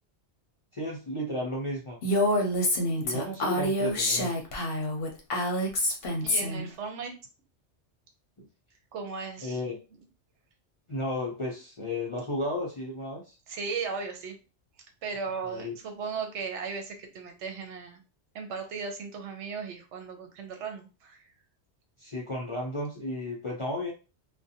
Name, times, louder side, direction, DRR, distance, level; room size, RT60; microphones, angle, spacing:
voice 1, 0.7-2.0 3.0-4.3 8.4-8.5 9.4-9.8 10.9-13.4 15.5-15.7 22.0-23.9, left 1 dB, 40° left, -3 dB, 0.4 m, -33 dB
Female speech woman speaking, 2.0-6.7, left 1 dB, 60° left, 0.8 m, -27 dB
voice 2, 6.2-7.1 8.9-9.6 13.5-14.4 15.0-18.0 18.3-21.2, right 5 dB, 85° right, 5 dB, 0.9 m, -36 dB
2.5 x 2.2 x 2.7 m, 0.31 s
omnidirectional pair, 1.2 m